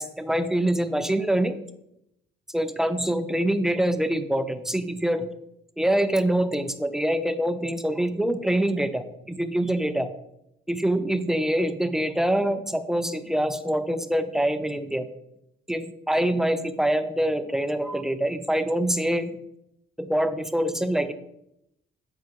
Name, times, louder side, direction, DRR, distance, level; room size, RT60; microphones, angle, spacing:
voice 1, 0.0-1.6 2.5-5.3 5.8-10.1 10.7-15.1 15.7-19.4 20.0-21.1, right 1 dB, ahead, 10 dB, 0.4 m, -25 dB
6.9 x 4.5 x 3.0 m, 0.81 s
cardioid pair, 90°, 20 cm